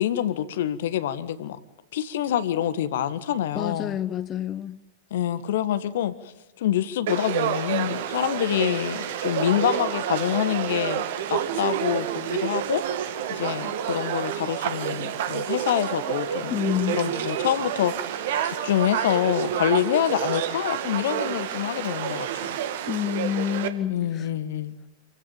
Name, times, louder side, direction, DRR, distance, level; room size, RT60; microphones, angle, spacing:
voice 1, 0.0-1.6 1.9-4.0 5.1-6.1 6.6-12.8 13.3-16.6 16.9-17.9 18.4-22.6 23.9-24.8, left 11 dB, 60° left, 14 dB, 1.5 m, -26 dB
voice 2, 3.5-4.8 16.5-17.0 22.9-24.3, left 10 dB, 30° left, 12 dB, 0.8 m, -28 dB
Conversation / Crowd, 7.1-23.7, right 9 dB, 55° right, 1.8 m, -29 dB
26.5 x 16.5 x 9.0 m, 1.0 s
figure-of-eight pair, 90°, 0 cm